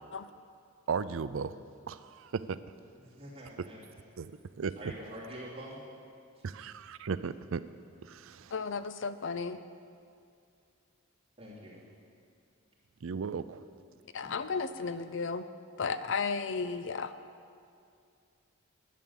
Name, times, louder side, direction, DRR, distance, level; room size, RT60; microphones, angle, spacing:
voice 1, 0.9-1.6 1.9-2.6 4.2-4.3 4.6-4.7 6.4-7.6 8.0-8.5 13.0-13.6, right 5 dB, 65° right, 14 dB, 0.4 m, -35 dB
voice 2, 3.0-3.8 4.8-5.9 6.4-6.5 11.4-11.8, equal, 25° right, -6 dB, 2.8 m, -45 dB
voice 3, 8.5-9.6 14.1-15.4 15.8-17.1, left 5 dB, 55° left, 12 dB, 0.5 m, -34 dB
11.0 x 9.5 x 7.0 m, 2.4 s
head